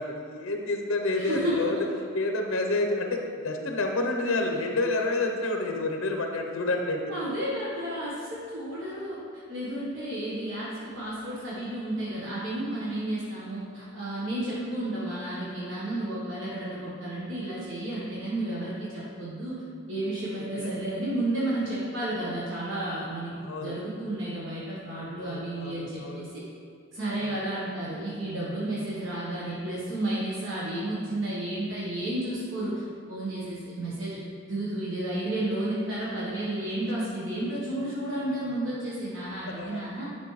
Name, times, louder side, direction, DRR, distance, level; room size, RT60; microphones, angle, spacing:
voice 1, 0.0-1.8 2.1-7.1 20.4-20.7 23.4-23.7 25.2-26.3 27.2-27.4 39.5-39.8, left 2 dB, 70° left, 3 dB, 0.8 m, -29 dB
voice 2, 1.1-1.8 7.1-19.6 19.9-26.4 26.9-32.8 33.1-34.2 34.5-40.0, right 1 dB, 60° right, -7 dB, 1.3 m, -32 dB
9.5 x 5.2 x 3.2 m, 2.3 s
head